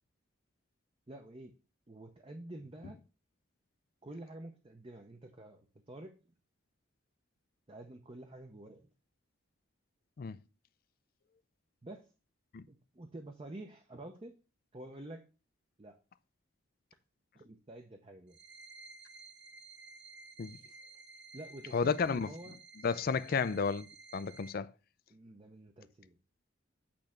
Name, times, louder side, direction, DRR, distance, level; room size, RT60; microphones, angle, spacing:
voice 1, 1.1-1.5 1.9-3.0 4.0-6.1 7.7-8.9 11.8-12.1 12.7-14.4 14.7-15.2 15.8-16.0 17.3-18.4 21.3-22.6 23.1-23.5 25.1-26.2, right 1 dB, 25° right, 0.6 m, -49 dB
sound 1, 18.3-24.5, right 3 dB, 55° right, 0.8 m, -54 dB
voice 2, 21.7-22.3 22.8-23.8 24.1-24.7, left 5 dB, 45° left, 0.4 m, -32 dB
8.7 x 3.2 x 5.7 m
head